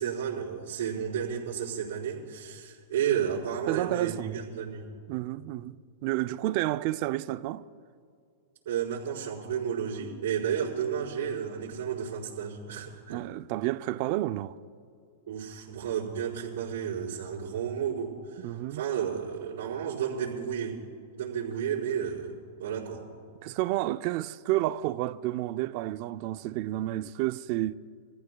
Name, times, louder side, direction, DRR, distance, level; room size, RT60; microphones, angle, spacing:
voice 1, 0.0-4.9 8.6-13.3 15.3-20.8 21.2-23.0, right 8 dB, 70° right, 4.6 m, -32 dB
voice 2, 3.7-4.4 5.1-5.8 6.0-7.6 13.1-14.6 18.4-18.8 23.4-27.7, right 16 dB, 45° right, 0.4 m, -30 dB
29.0 x 14.5 x 2.3 m
hypercardioid pair, 140°, 0 cm